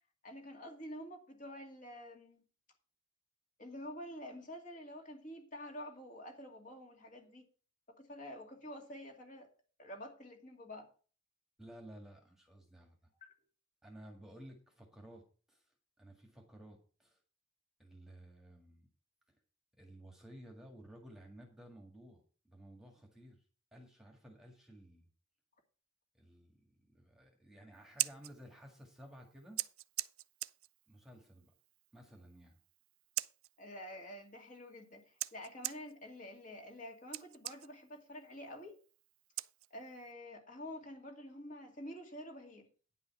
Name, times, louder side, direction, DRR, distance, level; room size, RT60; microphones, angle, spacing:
voice 1, 0.2-2.4 3.6-7.5 7.9-9.5 9.8-10.9 13.2-13.3 33.6-38.8 39.7-42.7, equal, 35° left, 2.4 m, -48 dB
voice 2, 11.6-13.0 13.8-17.2 17.8-18.9 19.3-19.4 19.8-23.4 23.7-25.1 26.1-29.6 30.9-31.5 31.9-32.6, right 1 dB, ahead, 1.7 m, -55 dB
Scissors, 27.7-40.1, right 18 dB, 85° right, 0.4 m, -45 dB
10.0 x 5.5 x 6.9 m
head